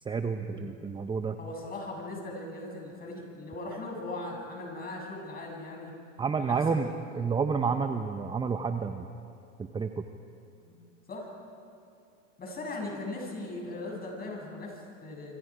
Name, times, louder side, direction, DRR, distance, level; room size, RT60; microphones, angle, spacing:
voice 1, 0.0-1.4 6.2-6.9 7.1-9.1 9.6-10.0, right 5 dB, 15° right, 7 dB, 0.8 m, -30 dB
voice 2, 1.4-5.9 6.4-7.2 7.6-7.7 10.6-10.8 11.1-11.3 12.4-15.4, left 2 dB, 25° left, -1 dB, 7.4 m, -39 dB
27.0 x 24.5 x 5.0 m, 2.6 s
hypercardioid pair, 115°, 37 cm